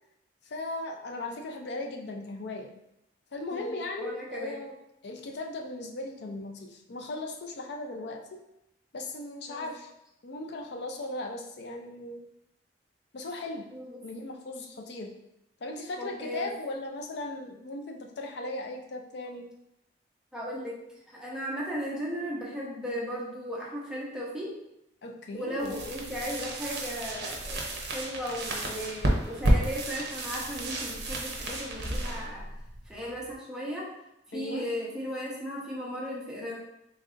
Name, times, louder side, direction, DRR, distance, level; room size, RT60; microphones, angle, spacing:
voice 1, 0.5-2.7 3.3-4.8 5.0-8.4 8.9-9.9 10.2-12.2 13.1-13.7 14.0-15.1 15.6-19.5 25.0-25.8 34.3-34.6, left 2 dB, 65° left, 3 dB, 0.5 m, -37 dB
voice 2, 3.5-4.6 9.5-9.7 13.7-14.0 16.0-16.5 20.3-20.8 21.1-24.6 25.3-32.4 32.9-33.9 34.3-36.6, equal, 5° right, -5 dB, 0.8 m, -36 dB
sound 1, 25.6-33.3, right 1 dB, 60° right, 0.7 m, -31 dB
3.2 x 2.6 x 3.7 m, 0.83 s
head